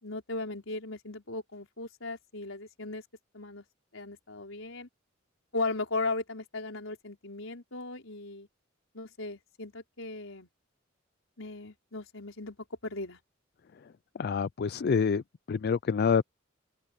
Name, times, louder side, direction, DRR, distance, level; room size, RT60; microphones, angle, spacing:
voice 1, 0.0-3.0 3.3-3.6 3.9-4.9 5.5-8.5 8.9-10.5 11.4-12.6 12.8-13.2, left 3 dB, 75° left, 4.9 m, -37 dB
voice 2, 13.8-15.2 15.5-16.2, left 6 dB, 50° left, 0.4 m, -27 dB
open air
head